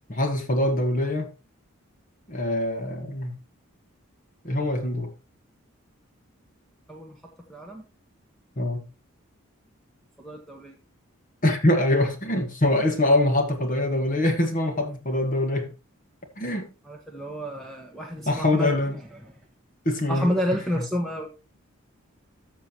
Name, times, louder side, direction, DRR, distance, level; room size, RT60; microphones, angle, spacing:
voice 1, 0.1-1.3 2.3-3.3 4.4-5.1 8.6-8.9 11.4-15.7 16.4-16.7 18.3-19.0 19.8-20.3, left 1 dB, 40° left, 1.5 m, -24 dB
voice 2, 7.5-7.8 10.2-10.8 16.8-18.7 19.2-19.3 20.1-21.3, equal, ahead, 1.2 m, -30 dB
13.5 x 7.0 x 3.0 m
head